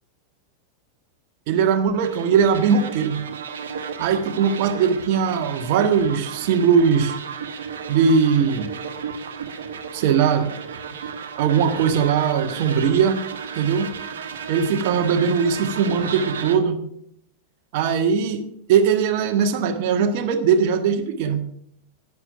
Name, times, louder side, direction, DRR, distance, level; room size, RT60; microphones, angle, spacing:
voice 1, 1.5-3.2 4.0-7.2 7.9-8.7 9.9-10.5 11.4-13.2 13.5-14.0 14.5-16.8 17.7-21.5, right 6 dB, 50° right, 8 dB, 1.6 m, -20 dB
sound 1, 2.0-16.6, right 6 dB, 65° right, 1.2 m, -33 dB
11.0 x 9.6 x 6.9 m, 0.73 s
figure-of-eight pair, 90°, 0 cm